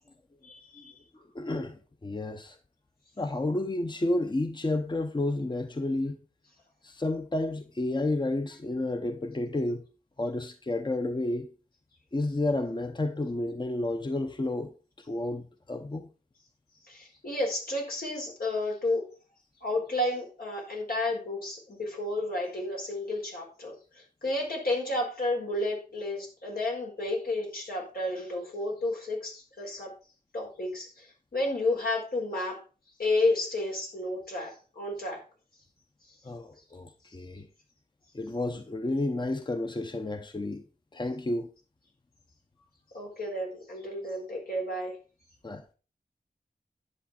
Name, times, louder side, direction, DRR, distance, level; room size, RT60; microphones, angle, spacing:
voice 1, 0.4-0.9 16.9-19.0 19.6-23.7 24.2-29.9 30.3-31.1 31.3-32.6 33.0-35.2 42.9-44.9, left 2 dB, 80° left, 4.5 m, -31 dB
voice 2, 1.3-2.6 3.2-6.2 6.8-9.8 10.2-11.5 12.1-14.7 15.1-16.1 36.2-37.5 38.1-40.6 40.9-41.5 45.4-45.6, left 2 dB, 30° left, 0.8 m, -31 dB
11.0 x 7.3 x 4.3 m
wide cardioid pair, 90°, 15 cm